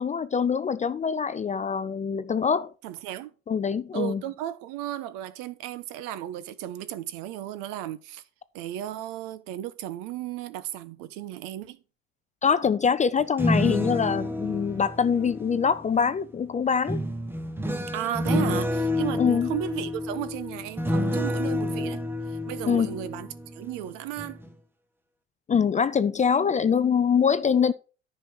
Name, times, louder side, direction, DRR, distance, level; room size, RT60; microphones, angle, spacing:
voice 1, 0.0-2.7 3.5-4.2 12.4-17.0 19.2-19.5 22.7-23.0 25.5-27.7, left 6 dB, 20° left, 0.5 m, -24 dB
voice 2, 2.8-3.3 3.9-8.2 8.5-11.8 17.9-22.0 22.3-24.4, right 12 dB, 60° right, 1.2 m, -34 dB
sound 1, 13.2-16.1 16.9-23.8 24.2-24.5, left 1 dB, 5° right, 1.3 m, -29 dB
10.5 x 5.5 x 6.3 m
hypercardioid pair, 90°, 37 cm